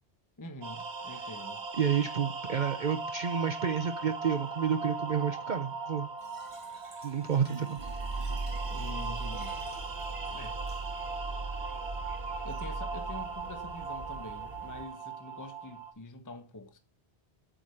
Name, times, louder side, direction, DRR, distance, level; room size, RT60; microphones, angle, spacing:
voice 1, 0.4-1.6 8.7-9.6 10.3-10.6 12.4-16.8, left 2 dB, 20° left, 0.9 m, -45 dB
sound 1, 0.6-15.9, right 4 dB, 85° right, 1.6 m, -39 dB
voice 2, 1.8-6.1 7.0-7.8, right 7 dB, 50° right, 0.8 m, -30 dB
Fill (with liquid), 6.2-11.2, right 3 dB, 30° right, 1.1 m, -53 dB
sound 2, 7.8-14.8, right 2 dB, 65° right, 1.6 m, -39 dB
8.4 x 5.2 x 6.3 m
omnidirectional pair, 1.1 m